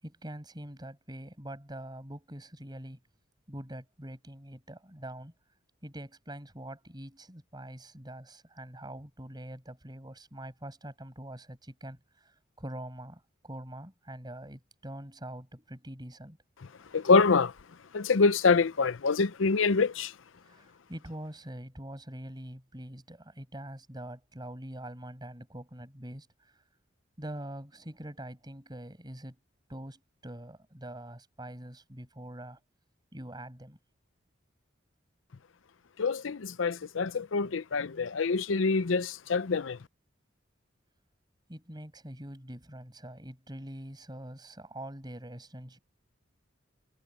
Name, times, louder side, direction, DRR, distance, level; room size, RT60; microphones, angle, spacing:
voice 1, 0.0-3.0 3.5-5.3 5.8-16.4 17.0-17.1 20.4-26.3 27.2-29.4 29.7-32.6 33.1-33.8 41.5-45.8, right 1 dB, 20° right, 6.6 m, -44 dB
voice 2, 16.9-17.5 17.9-20.1 36.0-39.8, left 4 dB, 85° left, 0.6 m, -25 dB
head